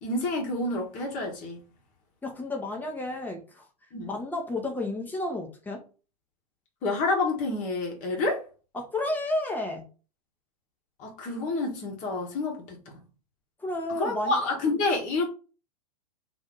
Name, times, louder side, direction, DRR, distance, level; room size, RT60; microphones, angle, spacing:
voice 1, 0.0-1.6 3.9-4.1 6.8-8.4 11.0-13.0 14.0-15.3, left 2 dB, 40° left, 1.1 m, -28 dB
voice 2, 2.2-3.6 4.1-5.8 8.7-9.9 13.6-14.4, left 2 dB, 10° left, 0.9 m, -31 dB
2.8 x 2.7 x 3.7 m
hypercardioid pair, 120°, 20 cm